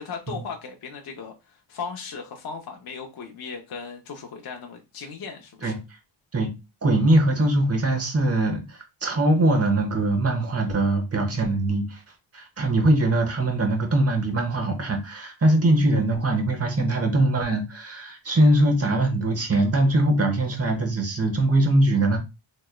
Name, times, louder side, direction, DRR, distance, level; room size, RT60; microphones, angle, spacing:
voice 1, 0.0-5.7, left 5 dB, 50° left, 0.7 m, -37 dB
voice 2, 6.8-12.0 12.3-22.2, right 1 dB, 30° right, 1.0 m, -22 dB
3.5 x 3.0 x 2.2 m
cardioid pair, 105°, 49 cm